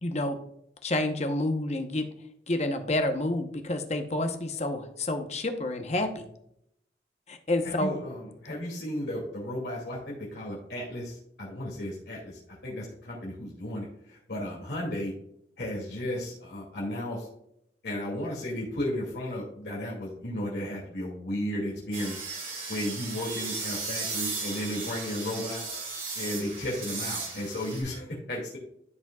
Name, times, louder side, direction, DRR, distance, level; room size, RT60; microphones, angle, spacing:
voice 1, 0.0-0.4 0.8-2.1 2.5-6.3 7.3-8.0, left 1 dB, 40° left, 6 dB, 0.9 m, -29 dB
voice 2, 7.6-15.1 15.6-17.3 17.8-22.2 22.7-25.7 26.1-28.6, left 1 dB, 70° left, -4 dB, 2.5 m, -34 dB
sound 1, 21.9-27.8, right 4 dB, 50° right, 3.2 m, -36 dB
13.0 x 5.1 x 2.3 m, 0.73 s
head